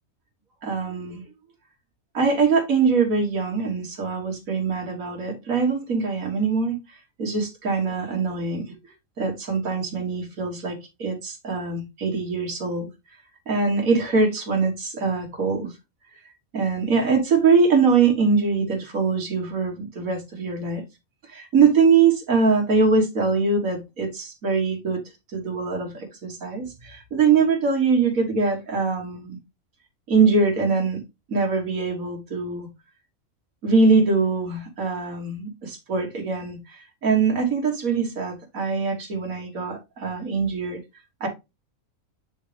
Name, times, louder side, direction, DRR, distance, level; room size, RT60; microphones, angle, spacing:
voice 1, 0.6-1.2 2.1-6.8 7.2-8.7 9.2-12.9 13.5-15.7 16.5-20.8 21.3-25.0 25.3-29.4 30.1-31.0 31.3-32.7 33.6-40.8 41.2-41.3, right 4 dB, 75° right, 2.2 m, -22 dB
8.6 x 3.8 x 3.4 m
omnidirectional pair, 1.5 m